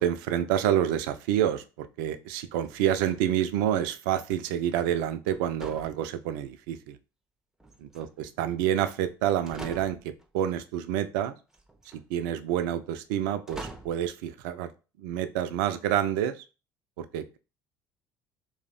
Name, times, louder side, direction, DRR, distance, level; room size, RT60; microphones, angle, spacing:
voice 1, 0.0-7.0 7.8-11.4 11.9-14.7 15.0-16.4 17.0-17.4, right 10 dB, 60° right, 10 dB, 0.4 m, -28 dB
sound 1, 2.6-3.5 5.3-6.6 7.6-8.4 9.0-9.1 9.5-10.3 11.5-12.0 13.5-14.1, right 2 dB, 5° right, 0.5 m, -45 dB
2.5 x 2.1 x 3.9 m, 0.32 s
figure-of-eight pair, 60°, 12 cm